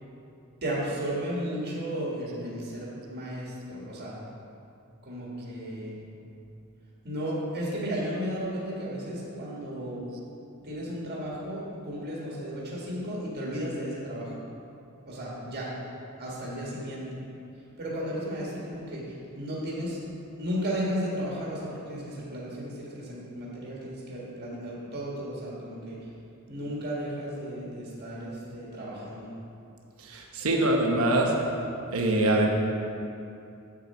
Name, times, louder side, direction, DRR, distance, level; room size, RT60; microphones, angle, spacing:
voice 1, 0.6-4.1 5.0-6.0 7.0-10.1 10.6-14.3 15.0-15.7 16.2-17.2 17.8-20.0 20.3-26.0 26.5-29.3, equal, 45° right, -5 dB, 1.7 m, -34 dB
voice 2, 30.1-31.3 31.9-32.5, right 1 dB, 70° right, 1 dB, 1.1 m, -23 dB
7.7 x 7.0 x 4.3 m, 2.6 s
head